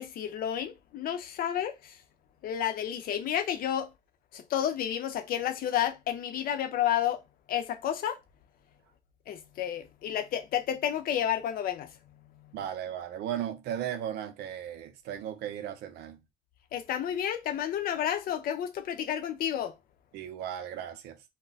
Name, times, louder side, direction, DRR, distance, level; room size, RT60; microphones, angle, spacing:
voice 1, 0.0-2.0 2.4-3.9 4.3-7.2 7.5-8.2 9.3-11.9 12.4-12.5 16.7-19.7, left 10 dB, 60° left, 0.6 m, -31 dB
voice 2, 12.5-16.2 20.1-21.2, right 10 dB, 80° right, 0.6 m, -36 dB
2.3 x 2.1 x 3.9 m
cardioid pair, 110°, 17 cm